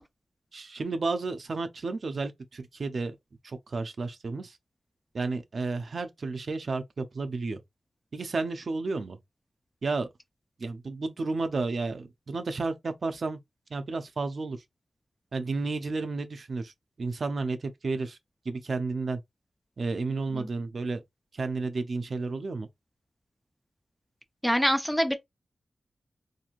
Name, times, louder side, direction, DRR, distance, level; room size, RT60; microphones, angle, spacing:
voice 1, 0.5-3.2 3.4-4.6 5.1-7.6 8.1-9.2 9.8-10.1 10.6-13.4 13.7-14.6 15.3-16.7 17.0-18.2 18.5-19.2 19.8-21.0 21.3-22.7, right 3 dB, 55° right, 0.5 m, -32 dB
voice 2, 24.4-25.1, equal, 5° left, 0.4 m, -25 dB
2.9 x 2.6 x 2.4 m
wide cardioid pair, 115°, 0 cm